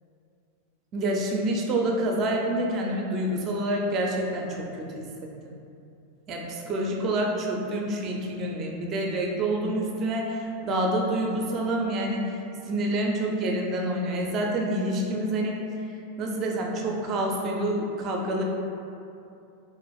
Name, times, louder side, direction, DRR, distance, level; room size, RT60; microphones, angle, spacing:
voice 1, 0.9-5.0 5.4-5.5 6.3-12.2 12.7-15.6 16.2-18.4, right 1 dB, 35° right, 0 dB, 0.4 m, -27 dB
3.9 x 2.4 x 2.3 m, 2.6 s
figure-of-eight pair, 90°, 0 cm